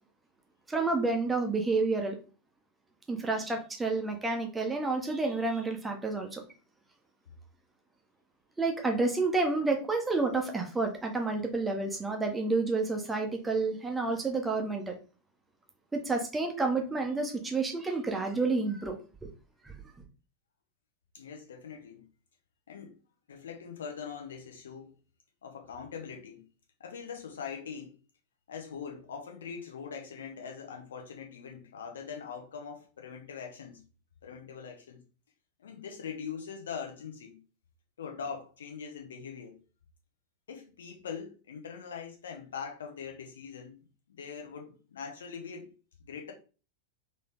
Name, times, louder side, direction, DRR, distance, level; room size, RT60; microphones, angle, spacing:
voice 1, 0.7-2.2 3.1-6.4 8.6-14.9 15.9-19.3 19.6-19.7, right 3 dB, 10° right, 1.0 m, -30 dB
voice 2, 21.1-22.0 22.7-23.0 23.3-24.9 25.4-26.4 26.8-27.9 28.5-33.8 34.2-35.0 35.6-37.4 38.0-39.6 40.5-45.7 46.1-46.3, left 6 dB, 65° left, 1.1 m, -42 dB
4.0 x 3.4 x 3.4 m
figure-of-eight pair, 90°, 0 cm